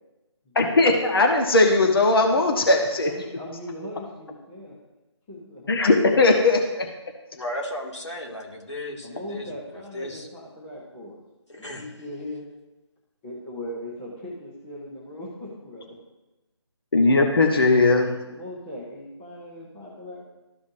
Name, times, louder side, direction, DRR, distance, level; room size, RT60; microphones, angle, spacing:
voice 1, 0.6-3.1 5.7-6.9 16.9-18.1, left 2 dB, 55° left, 2 dB, 1.1 m, -19 dB
voice 2, 2.2-4.7 5.3-5.7 9.0-11.2 11.6-12.5 13.2-15.9 17.9-20.3, left 1 dB, 5° left, -7 dB, 0.3 m, -39 dB
voice 3, 7.3-10.3 11.5-12.1, left 1 dB, 75° left, 0 dB, 2.0 m, -35 dB
13.5 x 5.1 x 2.6 m, 1.0 s
figure-of-eight pair, 155°, 15 cm